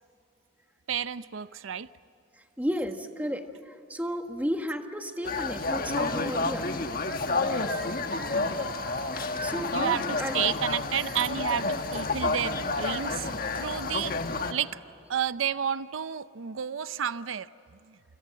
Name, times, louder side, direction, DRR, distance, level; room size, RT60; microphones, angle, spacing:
voice 1, 0.9-1.9 8.3-8.7 9.7-14.1 14.5-14.8 15.1-17.5 17.9-18.0, right 8 dB, 85° right, 15 dB, 0.6 m, -31 dB
voice 2, 2.6-6.8 9.1-10.4, equal, 10° right, 5 dB, 1.5 m, -33 dB
sound 1, 5.2-14.5, left 3 dB, 45° left, 1.4 m, -30 dB
sound 2, 7.4-12.8, left 1 dB, 75° left, 7.2 m, -46 dB
28.5 x 26.0 x 7.7 m, 2.8 s
head